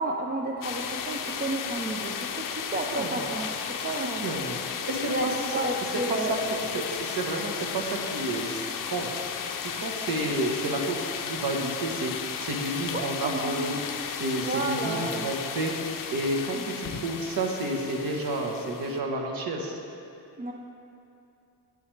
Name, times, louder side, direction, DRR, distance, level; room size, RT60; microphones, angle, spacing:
voice 1, 0.0-4.3 5.1-6.4 13.2-13.6 14.4-15.3 16.5-16.6 20.4-20.5, right 2 dB, 25° right, -1 dB, 0.5 m, -31 dB
sound 1, 0.6-19.0, left 7 dB, 55° left, 0.6 m, -34 dB
voice 2, 4.2-5.3 6.1-6.4 6.7-9.4 9.8-11.0 11.2-13.8 14.2-15.7 16.1-19.8, right 2 dB, 60° right, 1 dB, 1.2 m, -30 dB
10.0 x 9.6 x 3.3 m, 2.7 s
cardioid pair, 150°, 40 cm